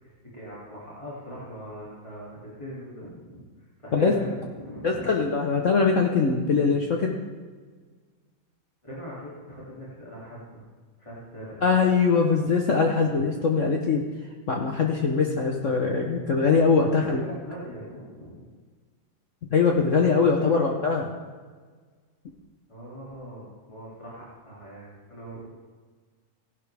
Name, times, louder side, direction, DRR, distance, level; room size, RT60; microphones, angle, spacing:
voice 1, 0.0-3.4 3.8-5.1 8.8-10.7 11.0-11.7 17.0-18.4 20.4-20.7 22.7-25.5, equal, 15° left, -8 dB, 2.5 m, -41 dB
voice 2, 4.8-7.2 11.6-14.0 14.5-17.2 19.5-21.1, left 5 dB, 55° left, 1 dB, 0.9 m, -22 dB
16.0 x 11.0 x 3.4 m, 1.5 s
omnidirectional pair, 2.3 m